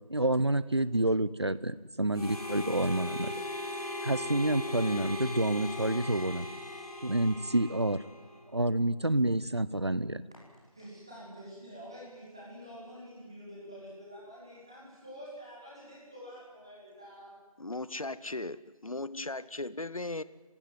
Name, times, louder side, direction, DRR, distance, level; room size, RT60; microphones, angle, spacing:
voice 1, 0.1-3.3 4.0-6.4 7.0-8.0 8.5-10.2, right 1 dB, 45° right, 0.8 m, -28 dB
Harmonica, 2.1-8.5, left 2 dB, 85° left, 5.4 m, -39 dB
voice 2, 10.7-17.4, equal, 10° right, 2.7 m, -47 dB
voice 3, 17.6-20.2, left 2 dB, 65° left, 1.0 m, -37 dB
27.0 x 16.0 x 9.5 m
figure-of-eight pair, 175°, 19 cm